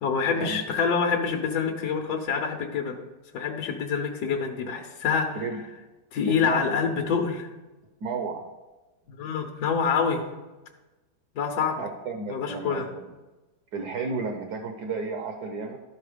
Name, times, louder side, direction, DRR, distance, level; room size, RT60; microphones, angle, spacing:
voice 1, 0.0-3.0 3.3-5.4 6.1-7.5 9.1-10.2 11.3-11.8 12.3-12.8, left 6 dB, 65° left, 3 dB, 1.3 m, -26 dB
voice 2, 6.2-6.7 8.0-8.4 11.8-13.1 13.7-15.8, right 4 dB, 65° right, 5 dB, 1.3 m, -33 dB
12.5 x 4.2 x 5.0 m, 1.1 s
omnidirectional pair, 1.9 m